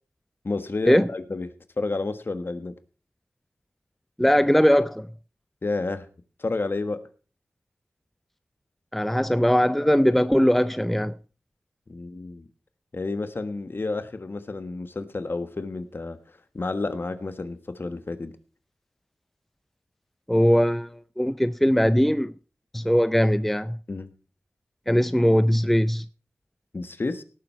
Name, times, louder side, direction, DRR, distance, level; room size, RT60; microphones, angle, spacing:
voice 1, 0.4-1.5 1.8-2.7 5.6-6.1 6.4-7.0 11.9-12.4 12.9-16.2 16.5-18.3 23.9-24.1 26.7-27.2, left 3 dB, 50° left, 1.4 m, -30 dB
voice 2, 4.2-5.1 8.9-11.1 20.3-20.9 21.2-22.3 22.7-23.8 24.9-26.0, equal, 5° left, 0.5 m, -20 dB
18.0 x 7.4 x 4.5 m
cardioid pair, 50°, 5 cm